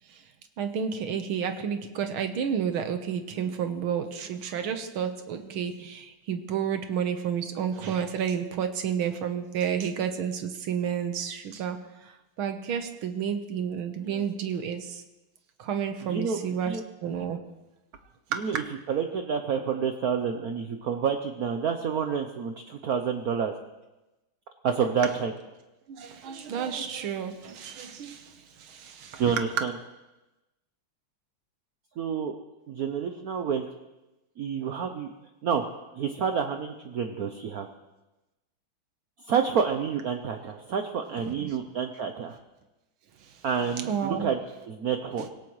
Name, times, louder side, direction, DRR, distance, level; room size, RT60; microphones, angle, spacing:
voice 1, 0.6-11.8 12.0-12.1 12.4-15.0 15.6-17.4 18.3-18.4 25.9-29.3 41.3-41.6 43.8-44.3 45.2-45.3, right 7 dB, 85° right, 7 dB, 1.9 m, -31 dB
voice 2, 16.0-16.8 18.3-18.6 18.9-23.5 24.6-25.3 29.2-29.7 32.0-32.4 32.7-33.6 34.4-35.1 35.4-35.6 35.9-37.7 39.2-42.4 43.4-44.4 44.7-45.3, right 7 dB, 60° right, 5 dB, 1.1 m, -28 dB
25.5 x 16.5 x 3.2 m, 1.0 s
omnidirectional pair, 2.2 m